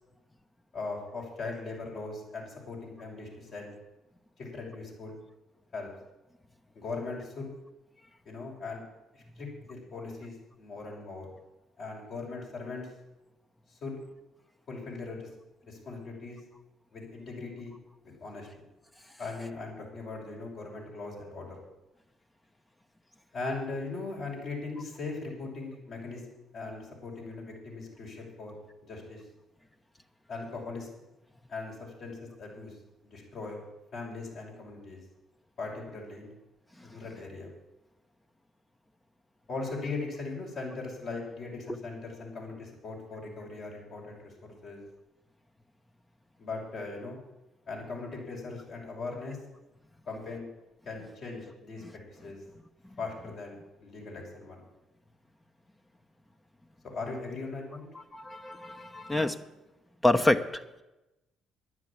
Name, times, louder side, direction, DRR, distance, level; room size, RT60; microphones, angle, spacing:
voice 1, 0.7-3.7 4.4-5.2 5.7-5.9 6.7-7.5 8.2-8.8 9.1-11.3 11.8-12.9 13.7-14.0 14.7-15.3 15.7-16.4 16.9-17.7 18.0-18.5 19.2-21.6 23.3-26.2 26.5-29.2 30.3-30.9 31.5-32.7 33.0-33.6 33.9-35.0 35.6-36.3 36.8-37.5 39.5-44.8 46.4-47.2 47.7-49.4 50.1-50.5 50.8-51.8 52.1-52.4 53.0-54.6 56.9-57.9, left 3 dB, 60° left, -2 dB, 6.0 m, -39 dB
voice 2, 57.9-59.4 60.0-60.6, left 2 dB, 15° left, 8 dB, 1.0 m, -27 dB
11.0 x 9.5 x 8.8 m, 0.99 s
supercardioid pair, 65°, 0 cm